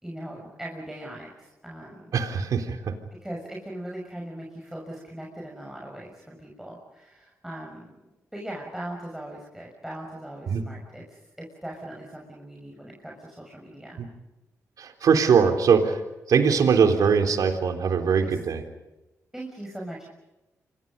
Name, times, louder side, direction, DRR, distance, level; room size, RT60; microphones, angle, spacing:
voice 1, 0.0-2.2 3.2-8.0 8.3-14.0 18.2-18.4 19.3-20.1, right 1 dB, 5° right, -2 dB, 6.4 m, -40 dB
voice 2, 2.1-2.9 10.5-10.6 14.8-16.0 16.3-18.6, right 6 dB, 75° right, 7 dB, 3.6 m, -21 dB
29.5 x 25.0 x 5.4 m, 1.0 s
cardioid pair, 75°, 6 cm